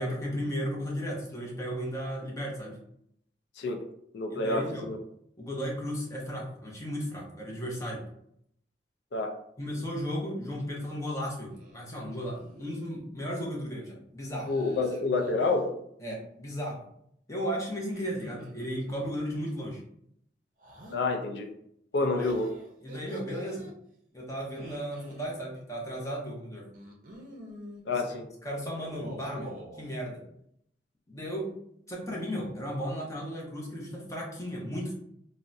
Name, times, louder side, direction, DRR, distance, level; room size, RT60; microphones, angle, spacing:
voice 1, 0.0-2.8 4.3-4.9 5.4-8.0 9.6-14.8 16.0-16.8 17.3-19.8 22.0-22.3 22.8-23.7 24.1-26.7 28.4-30.2 31.1-31.6 31.9-34.9, equal, 15° left, -3 dB, 0.7 m, -35 dB
voice 2, 4.1-5.0 9.1-9.3 14.5-15.7 20.9-21.5 21.9-22.5 27.9-28.3, left 3 dB, 75° left, 4 dB, 0.4 m, -28 dB
sound 1, 11.5-11.8 12.2-12.7 14.4-15.7 17.8-19.1 20.6-21.0 22.2-23.7 24.4-25.3 26.7-27.8 28.8-29.8, right 1 dB, 45° right, 0.6 m, -46 dB
3.5 x 2.0 x 2.6 m, 0.72 s
head